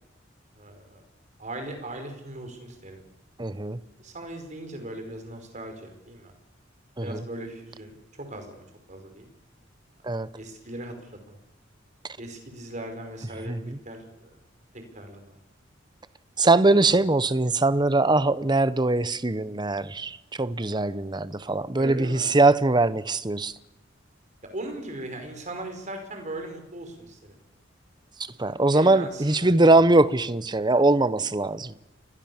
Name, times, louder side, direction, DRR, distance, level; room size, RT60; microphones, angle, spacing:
voice 1, 0.6-1.0 1.4-3.0 4.0-6.3 7.0-9.3 10.3-11.4 12.2-13.5 13.8-14.4 14.7-15.4 16.8-17.0 21.8-22.3 24.4-27.4 28.5-29.9, right 1 dB, 40° right, 5.7 m, -39 dB
voice 2, 3.4-3.8 7.0-7.2 10.0-10.3 13.5-13.8 16.4-23.5 28.4-31.7, right 2 dB, 25° right, 0.9 m, -22 dB
30.0 x 23.0 x 7.4 m
head